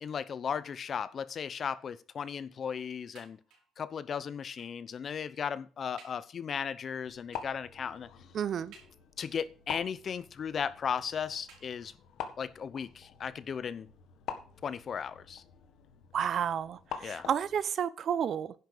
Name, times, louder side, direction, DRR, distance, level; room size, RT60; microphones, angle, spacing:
voice 1, 0.0-3.4 3.8-8.1 9.2-11.9 12.4-13.9 14.6-15.4 17.0-17.3, left 7 dB, 55° left, 0.9 m, -36 dB
sound 1, 3.1-3.8 4.6-4.9 5.4-5.5 6.0-6.3 7.3-7.7 8.7-9.3 10.1-10.7 11.5-12.2 13.0-13.1 13.4-13.5, right 6 dB, 90° right, 4.7 m, -59 dB
sound 2, 7.1-17.6, left 8 dB, 80° left, 1.7 m, -46 dB
voice 2, 8.3-8.7 16.1-18.5, right 8 dB, 60° right, 0.8 m, -31 dB
10.5 x 6.1 x 6.7 m
cardioid pair, 90°, 0 cm